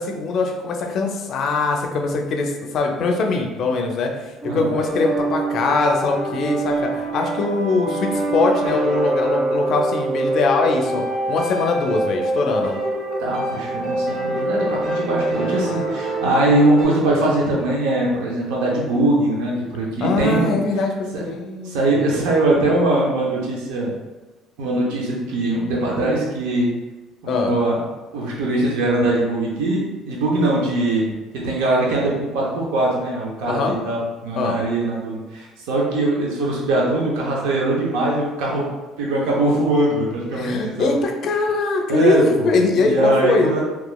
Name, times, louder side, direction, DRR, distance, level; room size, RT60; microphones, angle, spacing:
voice 1, 0.0-12.8 20.0-22.0 27.3-27.5 33.5-33.7 34.3-34.6 40.3-43.5, left 3 dB, 60° left, 2 dB, 0.4 m, -22 dB
sound 1, 4.4-16.8, right 2 dB, 65° right, 0.9 m, -25 dB
voice 2, 13.2-20.5 21.1-21.2 21.6-23.9 24.6-26.7 27.2-27.8 28.1-31.1 31.4-38.7 39.0-40.9 41.9-42.5 42.8-43.6, right 2 dB, 90° right, -3 dB, 0.5 m, -21 dB
2.9 x 2.3 x 2.2 m, 1.2 s
supercardioid pair, 95°, 0 cm